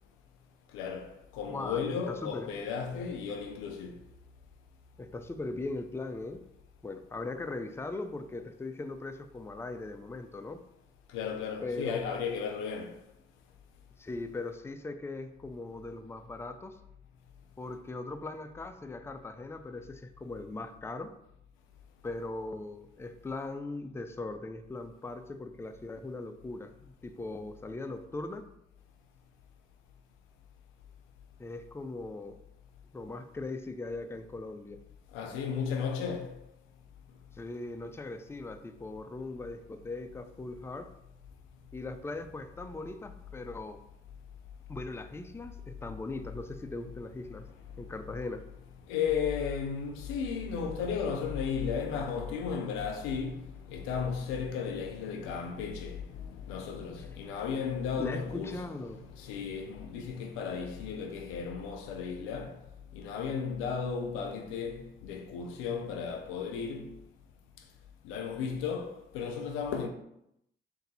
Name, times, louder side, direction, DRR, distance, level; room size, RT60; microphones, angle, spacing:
voice 1, 0.7-4.0 11.1-13.0 35.1-36.4 48.9-62.6 62.9-66.9 68.0-69.9, left 6 dB, 85° left, 0.5 m, -34 dB
voice 2, 1.5-1.8 2.1-2.5 5.0-6.5 6.8-10.6 11.6-12.2 14.0-16.8 17.6-21.1 22.0-28.5 31.4-32.4 32.9-34.8 37.3-40.9 41.7-43.8 44.7-47.5 47.8-48.4 58.0-59.1, left 2 dB, 10° left, 0.4 m, -39 dB
3.9 x 2.6 x 4.0 m
supercardioid pair, 50°, 20 cm